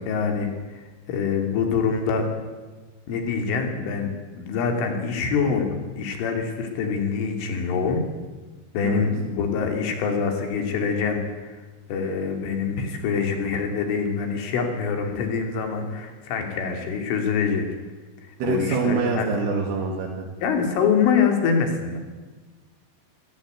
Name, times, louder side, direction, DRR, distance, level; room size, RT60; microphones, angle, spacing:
voice 1, 0.1-2.3 3.1-4.1 4.4-8.0 8.8-11.6 11.9-17.7 18.2-19.3 20.4-22.0, left 5 dB, 75° left, 4 dB, 5.1 m, -25 dB
voice 2, 18.4-20.3, right 4 dB, 75° right, -1 dB, 4.7 m, -25 dB
26.5 x 16.0 x 9.4 m, 1.3 s
omnidirectional pair, 5.8 m